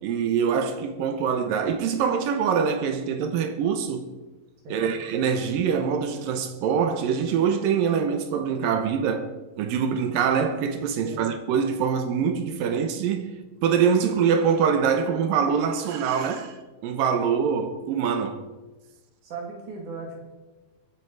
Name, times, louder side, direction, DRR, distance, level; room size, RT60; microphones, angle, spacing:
voice 1, 0.0-4.1 4.7-9.3 9.6-13.3 13.6-16.6 16.8-18.4, right 7 dB, 75° right, 2.6 m, -24 dB
voice 2, 4.6-5.0 11.0-11.3 19.2-20.2, right 3 dB, 60° right, 4.1 m, -37 dB
23.0 x 8.9 x 4.8 m
omnidirectional pair, 4.1 m